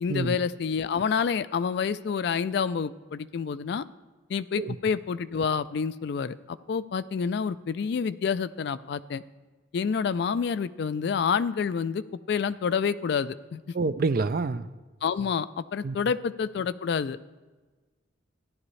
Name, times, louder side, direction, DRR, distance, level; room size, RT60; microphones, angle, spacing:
voice 1, 0.0-3.8 4.3-9.2 9.7-13.6 15.0-17.2, left 6 dB, 55° left, 0.3 m, -28 dB
voice 2, 13.7-14.7 15.8-16.0, right 3 dB, 45° right, 0.4 m, -27 dB
14.0 x 11.0 x 3.2 m
head